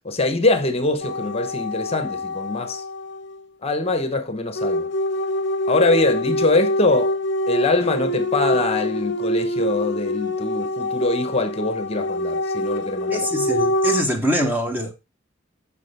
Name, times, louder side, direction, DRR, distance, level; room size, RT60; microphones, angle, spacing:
voice 1, 0.0-2.8 3.6-4.9 5.7-7.2 7.5-13.3, left 2 dB, 30° left, 0.9 m, -23 dB
sound 1, 1.0-3.4 4.6-14.0, left 1 dB, 65° left, 0.6 m, -25 dB
voice 2, 13.1-14.9, equal, 10° right, 1.1 m, -23 dB
8.3 x 5.9 x 3.3 m
head